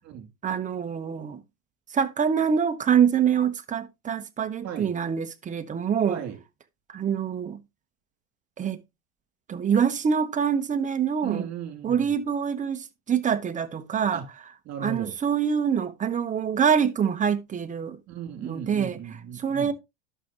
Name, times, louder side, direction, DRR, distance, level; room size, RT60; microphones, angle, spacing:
voice 1, 0.4-1.4 1.9-6.2 6.9-7.6 8.6-8.8 9.5-11.4 11.8-14.2 14.8-18.0 18.4-19.0 19.4-19.7, right 7 dB, 20° right, 0.9 m, -25 dB
voice 2, 6.1-6.4 11.2-12.1 14.1-14.3 14.6-15.1 18.1-19.7, right 8 dB, 40° right, 3.0 m, -36 dB
11.0 x 6.6 x 2.9 m
hypercardioid pair, 115°, 40 cm